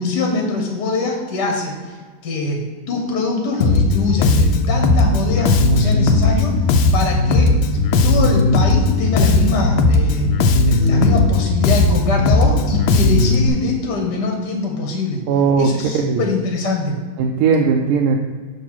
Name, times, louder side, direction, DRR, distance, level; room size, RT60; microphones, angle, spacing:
voice 1, 0.0-2.0 2.2-6.6 6.9-10.4 10.6-15.2 15.6-17.0, left 3 dB, 60° left, 1 dB, 1.4 m, -23 dB
Bass guitar, 3.6-13.5, left 2 dB, 80° left, 1.4 m, -16 dB
voice 2, 15.3-16.2 17.2-18.2, right 5 dB, 90° right, 3 dB, 1.4 m, -17 dB
6.4 x 3.6 x 5.7 m, 1.5 s
omnidirectional pair, 2.2 m